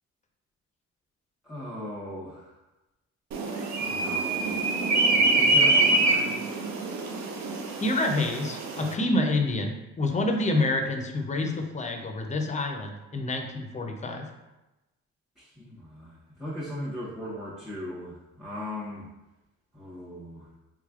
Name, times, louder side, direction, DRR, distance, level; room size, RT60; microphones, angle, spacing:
voice 1, 1.4-2.5 3.8-4.6 5.1-6.4 15.4-19.1 19.7-20.5, left 1 dB, ahead, -7 dB, 0.9 m, -38 dB
sound 1, 3.3-8.9, right 2 dB, 65° right, 0.6 m, -25 dB
voice 2, 7.8-14.3, left 2 dB, 25° left, 4 dB, 0.5 m, -28 dB
3.5 x 3.2 x 2.4 m, 1.0 s
cardioid pair, 90°, 30 cm